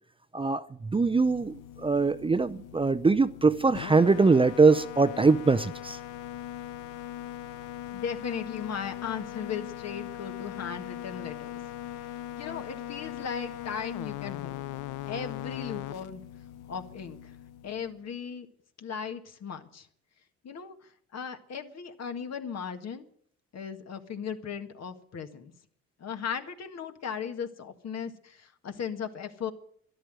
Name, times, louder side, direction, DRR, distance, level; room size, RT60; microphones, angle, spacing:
voice 1, 0.3-0.6 0.9-6.0, right 4 dB, 20° right, 0.6 m, -22 dB
sound 1, 0.8-18.1, left 13 dB, 90° left, 0.7 m, -40 dB
voice 2, 7.9-11.5 12.0-14.5 15.0-16.2 16.7-17.3 17.6-18.5 18.8-19.9 20.4-23.1 23.5-25.5 26.0-29.5, left 7 dB, 60° left, 1.8 m, -37 dB
13.0 x 11.5 x 9.1 m
cardioid pair, 90°, 30 cm